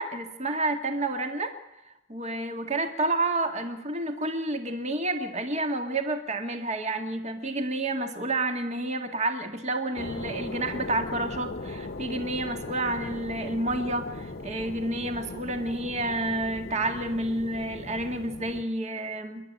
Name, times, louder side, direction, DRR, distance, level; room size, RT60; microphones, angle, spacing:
voice 1, 0.0-1.5 2.1-19.5, right 2 dB, 30° right, 5 dB, 1.8 m, -30 dB
sound 1, 10.0-18.6, left 2 dB, 45° left, 1.1 m, -38 dB
29.0 x 11.5 x 9.7 m, 0.88 s
head